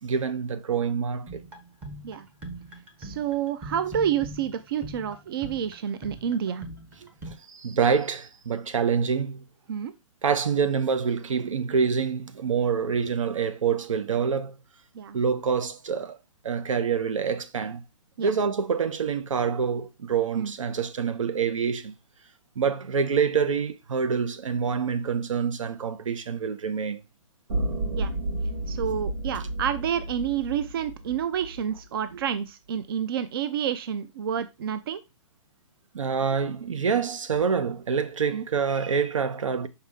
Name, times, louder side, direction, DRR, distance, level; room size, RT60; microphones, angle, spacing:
voice 1, 0.0-1.4 7.3-9.4 10.2-14.6 15.1-16.2 16.4-17.8 18.2-21.9 22.5-27.0 35.9-39.7, right 6 dB, 80° right, 1.0 m, -26 dB
sound 1, 1.3-7.3, right 1 dB, 10° right, 0.7 m, -42 dB
voice 2, 3.0-6.6 9.7-9.9 14.9-15.2 18.2-18.3 20.3-20.5 27.9-28.1 28.7-35.0 38.3-38.4, right 8 dB, 45° right, 0.5 m, -29 dB
sound 2, 27.5-31.8, right 2 dB, 65° right, 2.6 m, -31 dB
5.7 x 4.8 x 3.5 m
hypercardioid pair, 160°, 16 cm